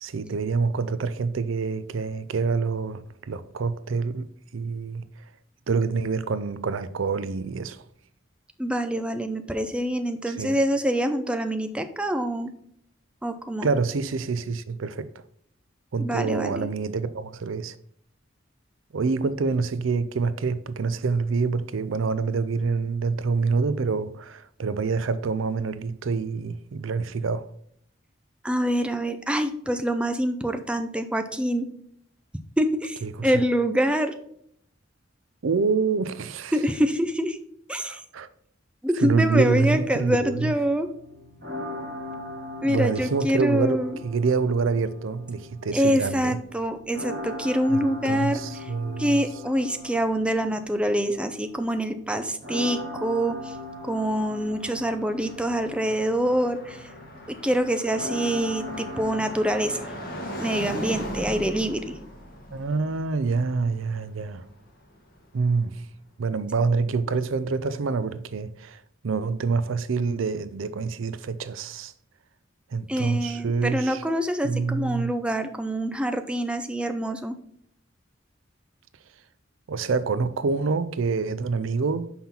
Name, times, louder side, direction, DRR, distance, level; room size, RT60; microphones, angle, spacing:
voice 1, 0.0-4.3 4.5-5.0 5.7-7.8 10.3-10.6 13.6-15.1 15.9-17.8 18.9-27.5 33.0-33.4 35.4-36.5 37.8-38.3 39.0-40.5 42.6-46.4 47.7-49.2 62.5-64.5 65.3-65.8 66.2-71.9 72.7-74.0 74.4-75.2 79.7-82.1, right 4 dB, 80° right, 0.5 m, -26 dB
voice 2, 8.6-12.5 13.2-13.7 16.0-16.7 28.4-31.7 32.6-34.1 36.5-37.4 37.7-38.0 38.8-40.9 42.6-43.9 45.7-48.4 49.0-53.4 53.8-56.8 57.4-59.9 60.4-61.8 72.9-77.4, equal, 5° right, 0.5 m, -25 dB
sound 1, 39.6-59.2, left 2 dB, 50° right, 3.0 m, -40 dB
Car passing by, 53.2-65.3, equal, 50° left, 1.8 m, -39 dB
5.7 x 5.6 x 4.3 m
head